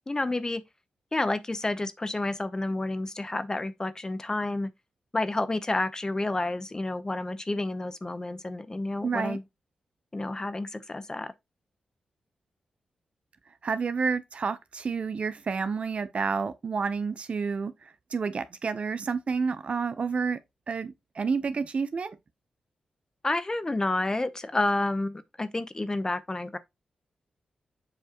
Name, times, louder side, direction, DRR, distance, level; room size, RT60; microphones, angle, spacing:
voice 1, 0.1-0.6 1.1-4.7 5.1-9.4 10.1-11.3 23.2-26.6, left 2 dB, 25° left, 0.8 m, -30 dB
voice 2, 9.0-9.4 13.6-20.4 20.7-22.2, right 5 dB, 55° right, 0.8 m, -30 dB
7.6 x 4.5 x 3.0 m
cardioid pair, 50°, 2 cm